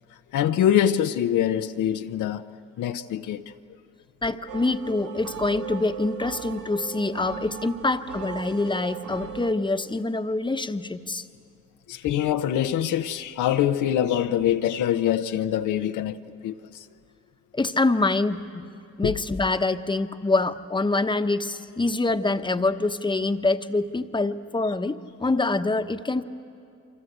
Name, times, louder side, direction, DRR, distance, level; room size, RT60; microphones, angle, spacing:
voice 1, 0.3-2.4 2.8-3.5 11.9-16.2 16.4-16.9 19.0-19.1, left 10 dB, 80° left, 0.9 m, -24 dB
voice 2, 4.2-11.3 17.5-18.7 19.0-26.2, left 2 dB, 15° left, 1.1 m, -25 dB
sound 1, 4.5-9.5, right 8 dB, 80° right, 1.7 m, -38 dB
28.5 x 25.0 x 8.0 m
cardioid pair, 90°, 30 cm